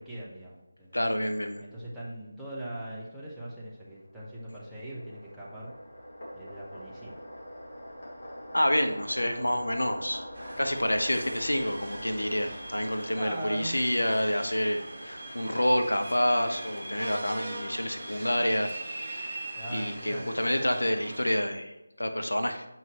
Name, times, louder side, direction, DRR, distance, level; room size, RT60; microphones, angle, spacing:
voice 1, 0.0-0.9 1.6-5.7 6.3-7.2 13.1-13.8 19.6-20.3, right 1 dB, ahead, -10 dB, 0.9 m, -40 dB
voice 2, 0.9-1.6 8.5-10.2 10.6-19.5 19.7-22.7, equal, 75° left, 6 dB, 0.8 m, -28 dB
sound 1, 3.8-14.5, equal, 40° left, 2.3 m, -45 dB
sound 2, 10.3-21.4, right 1 dB, 40° right, 1.3 m, -41 dB
7.4 x 5.5 x 3.0 m, 1.0 s
figure-of-eight pair, 160°, 0 cm